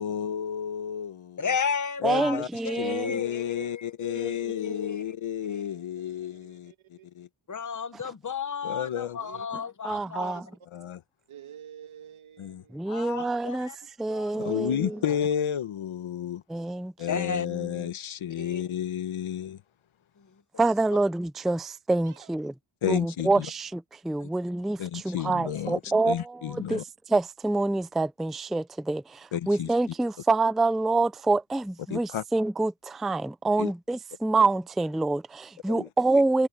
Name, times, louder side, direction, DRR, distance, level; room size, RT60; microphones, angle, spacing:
voice 1, 0.0-1.5 2.0-2.5 2.8-6.7 7.2-7.3 8.6-9.2 10.7-11.0 12.4-12.6 14.4-16.4 17.0-19.6 22.8-23.3 24.8-25.8 26.0-26.8 29.3-29.7 31.9-32.2 33.6-33.7 35.7-35.9, left 9 dB, 85° left, 1.2 m, -31 dB
voice 2, 1.4-5.0 5.5-5.6 7.5-10.4 12.9-13.7 14.1-14.3 14.6-15.2 17.1-17.5 18.3-18.6 24.2-24.3, left 6 dB, 40° left, 1.2 m, -34 dB
voice 3, 2.0-3.2 4.2-4.7 7.9-8.1 9.8-10.5 12.7-15.0 16.5-18.0 20.6-22.5 22.9-36.5, right 3 dB, ahead, 0.4 m, -27 dB
voice 4, 4.7-5.1 5.4-7.1 9.2-9.5 10.0-10.6 11.3-12.9 14.3-15.1 22.0-22.3, right 9 dB, 90° right, 2.6 m, -49 dB
wide cardioid pair, 135°, 47 cm